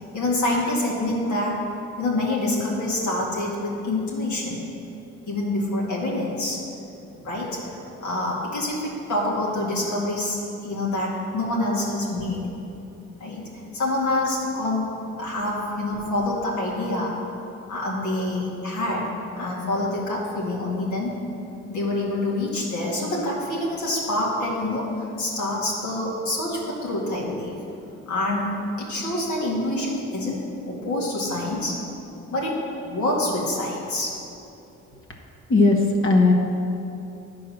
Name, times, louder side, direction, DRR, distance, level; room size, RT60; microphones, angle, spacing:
voice 1, 0.1-1.6 2.0-4.6 5.3-6.6 7.2-12.5 13.2-14.9 15.2-17.1 17.7-19.1 19.4-21.2 21.7-27.5 28.1-28.5 28.8-31.8 32.3-34.2, left 1 dB, 75° left, -5 dB, 2.1 m, -26 dB
voice 2, 35.5-36.3, left 3 dB, 45° left, 2 dB, 1.3 m, -18 dB
10.0 x 4.6 x 6.4 m, 2.8 s
cardioid pair, 90°, 30 cm